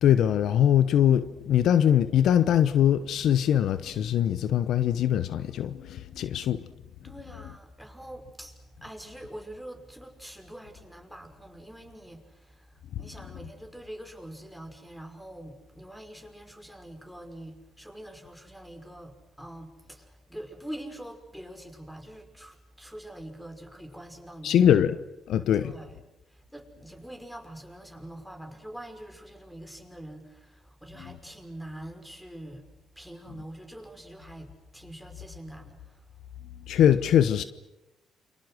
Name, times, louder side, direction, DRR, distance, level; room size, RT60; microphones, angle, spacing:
voice 1, 0.0-6.7 24.4-25.0 25.3-25.7 36.7-37.4, left 10 dB, 70° left, 0.9 m, -22 dB
voice 2, 7.0-24.7 25.6-26.0 26.3-32.7 33.0-36.3, right 1 dB, ahead, 5.8 m, -44 dB
29.0 x 25.0 x 6.5 m
supercardioid pair, 60°, 0 cm